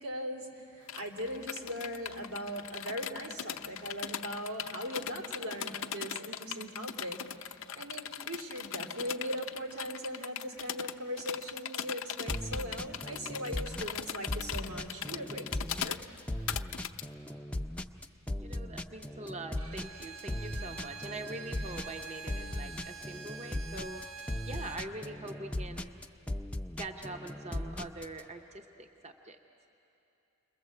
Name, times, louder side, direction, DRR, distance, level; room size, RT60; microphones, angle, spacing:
voice 1, 0.0-16.0, equal, 85° right, 2 dB, 2.8 m, -39 dB
sound 1, 0.9-17.0, left 9 dB, 60° left, 0.5 m, -39 dB
sound 2, 12.3-28.2, left 1 dB, 5° left, 0.5 m, -38 dB
voice 2, 18.4-24.0 24.4-25.9 26.8-29.4, right 2 dB, 30° right, 4 dB, 0.7 m, -43 dB
Bowed string instrument, 19.6-24.9, right 4 dB, 70° right, 1.0 m, -46 dB
28.5 x 21.5 x 7.6 m, 3.0 s
head